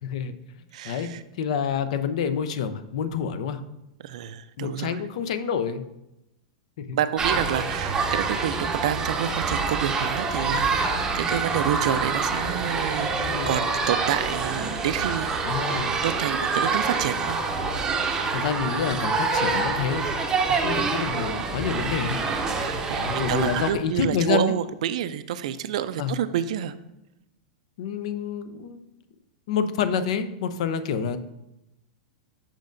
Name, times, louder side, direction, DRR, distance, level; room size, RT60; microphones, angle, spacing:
voice 1, 0.0-0.3 0.8-3.6 4.6-5.8 6.8-7.0 13.2-13.6 15.4-15.9 18.3-20.1 20.6-22.2 23.0-24.5 26.0-26.1 27.8-28.8 29.5-31.2, left 7 dB, 65° left, 11 dB, 0.6 m, -28 dB
voice 2, 0.7-1.2 4.0-5.0 6.9-15.4 16.0-17.4 22.6-26.7, right 10 dB, 65° right, 12 dB, 0.4 m, -28 dB
sound 1, 7.2-23.7, right 4 dB, 15° right, 0.7 m, -26 dB
7.4 x 5.1 x 2.6 m, 0.91 s
supercardioid pair, 150°, 4 cm